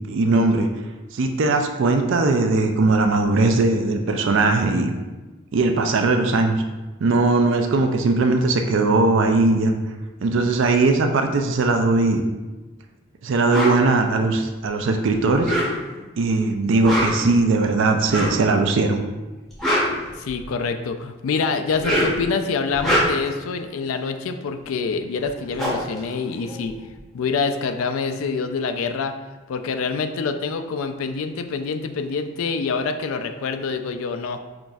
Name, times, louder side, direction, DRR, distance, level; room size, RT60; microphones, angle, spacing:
voice 1, 0.1-0.7 1.1-4.9 5.5-6.6 7.0-9.7 10.2-12.2 13.2-15.5 16.2-19.0, right 3 dB, 65° right, 4 dB, 0.4 m, -19 dB
sound 1, 13.5-13.8 15.3-16.0 16.7-17.3 18.1-18.4 19.4-20.6 21.6-22.3 22.7-23.4 24.9-25.0 25.2-26.9, equal, ahead, 0.7 m, -24 dB
voice 2, 20.2-26.7 27.1-29.1 29.5-34.4, left 4 dB, 85° left, 7 dB, 0.3 m, -26 dB
5.8 x 2.5 x 2.3 m, 1.2 s
head